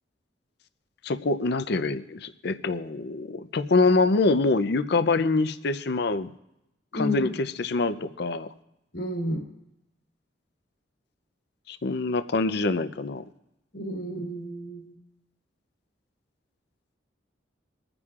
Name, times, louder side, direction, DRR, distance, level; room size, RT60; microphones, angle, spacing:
voice 1, 1.0-6.3 6.9-8.5 11.7-13.2, left 3 dB, 60° left, 11 dB, 0.6 m, -25 dB
voice 2, 6.9-7.3 8.9-9.4 13.7-14.9, left 1 dB, 80° left, -1 dB, 3.3 m, -31 dB
26.5 x 9.8 x 2.4 m, 0.87 s
head